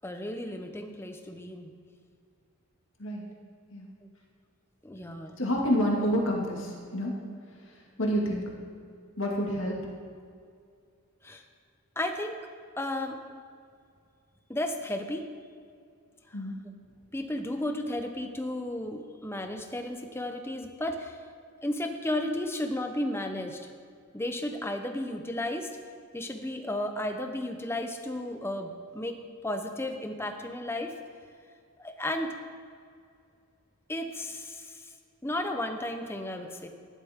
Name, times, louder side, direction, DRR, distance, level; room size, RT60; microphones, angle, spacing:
voice 1, 0.0-1.7 4.8-5.4 11.2-11.4 12.0-12.4 12.8-13.2 14.5-15.3 16.3-16.4 17.1-21.2 21.6-23.6 24.1-25.7 26.1-29.2 29.4-30.9 31.8-32.3 33.9-34.8 35.2-36.7, left 1 dB, 10° left, 5 dB, 0.8 m, -33 dB
voice 2, 5.4-7.1 8.0-8.5 9.2-9.8 16.3-16.6, equal, 60° left, -2 dB, 2.3 m, -28 dB
15.0 x 11.5 x 3.7 m, 2.3 s
head